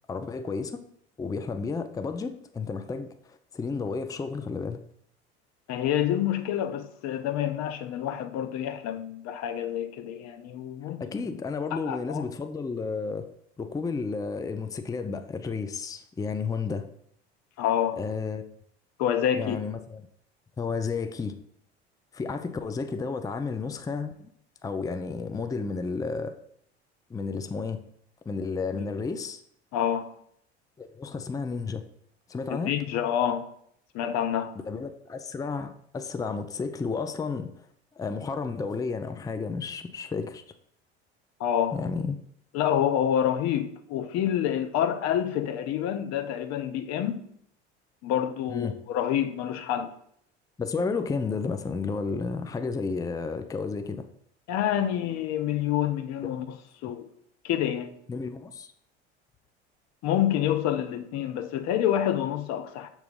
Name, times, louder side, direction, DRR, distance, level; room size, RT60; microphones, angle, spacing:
voice 1, 0.1-0.8 1.2-4.8 11.0-13.3 13.6-16.9 17.9-18.4 19.3-20.0 20.6-21.4 22.1-24.3 24.6-26.3 27.1-27.8 28.3-29.4 30.8-31.8 32.3-32.7 34.6-37.5 38.0-40.4 41.7-42.2 48.5-48.8 50.6-54.1 58.1-58.7, left 4 dB, 10° left, 0.5 m, -32 dB
voice 2, 5.7-11.2 11.7-12.2 17.6-18.0 19.0-19.6 28.7-28.9 29.7-30.1 32.5-33.5 33.9-34.6 41.4-41.8 42.5-47.2 48.0-49.9 54.5-56.6 56.8-57.1 57.4-58.0 60.0-62.9, left 10 dB, 55° left, 0.8 m, -27 dB
6.7 x 3.0 x 5.3 m
hypercardioid pair, 70°, 33 cm